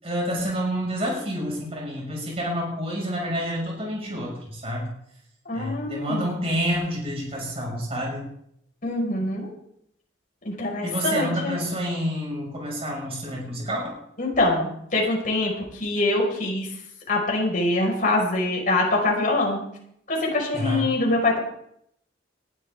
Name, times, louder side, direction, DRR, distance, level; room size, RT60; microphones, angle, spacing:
voice 1, 0.0-4.9 5.5-8.3 10.8-13.9 20.5-20.8, equal, 30° right, -2 dB, 6.1 m, -28 dB
voice 2, 5.5-6.3 8.8-9.5 10.4-11.6 14.2-16.7 17.1-19.6 20.1-21.4, left 2 dB, 45° left, -1 dB, 5.4 m, -24 dB
20.0 x 12.5 x 3.7 m, 0.73 s
head